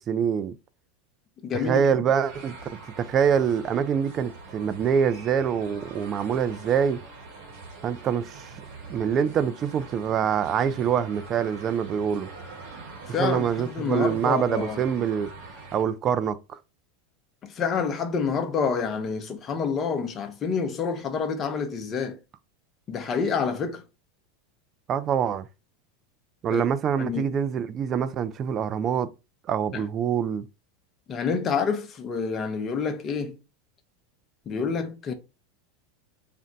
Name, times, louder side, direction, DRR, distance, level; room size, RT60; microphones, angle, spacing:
voice 1, 0.1-0.5 1.5-2.6 3.0-7.0 7.8-8.6 8.9-12.3 13.2-15.3 15.7-16.6 24.9-25.5 26.4-29.1 29.5-30.5, right 7 dB, 35° right, 0.4 m, -25 dB
voice 2, 1.4-1.8 13.1-13.5 13.7-14.8 17.6-22.1 22.9-23.8 26.5-26.6 27.0-27.3 29.7-29.8 31.1-33.3 34.5-35.1, left 5 dB, 35° left, 0.7 m, -28 dB
sound 1, 2.3-15.8, right 3 dB, 65° right, 1.2 m, -44 dB
2.5 x 2.1 x 3.9 m
hypercardioid pair, 110°, 0 cm